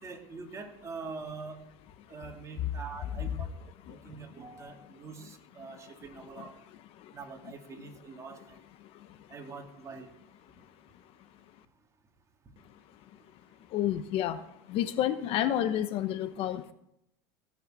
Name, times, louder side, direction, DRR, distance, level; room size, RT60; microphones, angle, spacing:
voice 1, 0.0-1.6 2.1-3.5 3.9-6.5 7.1-8.6 9.3-10.1, right 4 dB, 25° right, 2 dB, 2.9 m, -44 dB
voice 2, 13.7-14.4 14.7-16.7, left 11 dB, 50° left, 11 dB, 1.1 m, -30 dB
17.0 x 6.6 x 8.2 m, 0.78 s
supercardioid pair, 115°, 12 cm